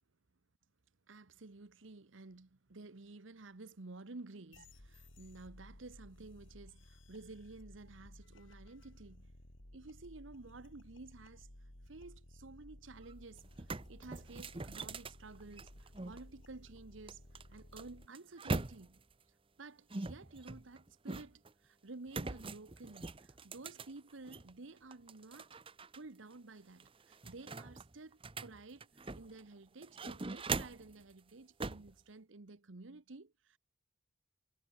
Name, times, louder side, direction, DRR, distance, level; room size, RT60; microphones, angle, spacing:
voice 1, 1.1-9.3 9.7-11.5 11.9-13.4 13.9-17.2 17.5-19.0 19.6-25.6 25.9-33.6, right 3 dB, 80° right, 1.1 m, -52 dB
sound 1, 4.5-18.1, left 1 dB, 85° left, 3.3 m, -57 dB
sound 2, 13.0-13.1 13.4-16.2 17.1-19.1 19.9-21.5 22.1-24.5 24.9-26.0 26.3-26.4 26.8-29.4 29.8-30.9 31.6-31.9, right 3 dB, 30° right, 0.9 m, -42 dB
head